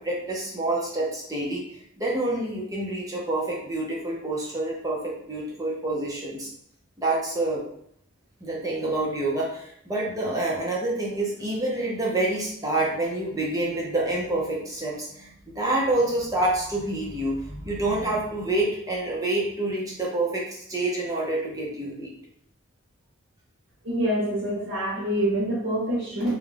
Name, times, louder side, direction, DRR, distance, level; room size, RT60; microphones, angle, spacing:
voice 1, 0.0-6.5 7.0-7.6 8.4-22.1, right 2 dB, 15° right, -4 dB, 0.5 m, -27 dB
voice 2, 23.8-26.3, right 1 dB, 70° right, -7 dB, 0.8 m, -26 dB
2.4 x 2.1 x 3.2 m, 0.69 s
head